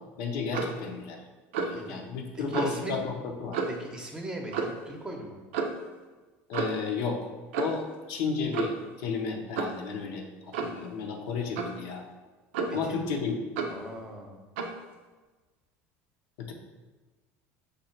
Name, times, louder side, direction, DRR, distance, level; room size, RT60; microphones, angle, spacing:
voice 1, 0.2-1.2 1.6-3.6 6.5-7.2 7.6-10.3 10.6-12.0 12.7-13.4 16.4-16.5, left 5 dB, 70° left, 2 dB, 0.7 m, -32 dB
Clock, 0.5-0.8 1.5-1.8 2.5-2.8 3.5-3.9 4.5-4.8 5.5-5.8 6.5-6.9 7.5-7.9 8.5-8.9 9.6-9.8 10.5-10.8 11.6-11.8 12.5-12.9 13.6-13.8 14.6-14.8, right 4 dB, 85° right, 0.5 m, -32 dB
voice 2, 2.3-3.0 3.7-5.4 12.7-13.0 13.7-14.4, right 1 dB, 10° right, 1 dB, 0.8 m, -39 dB
5.2 x 2.4 x 4.3 m, 1.3 s
supercardioid pair, 120°, 6 cm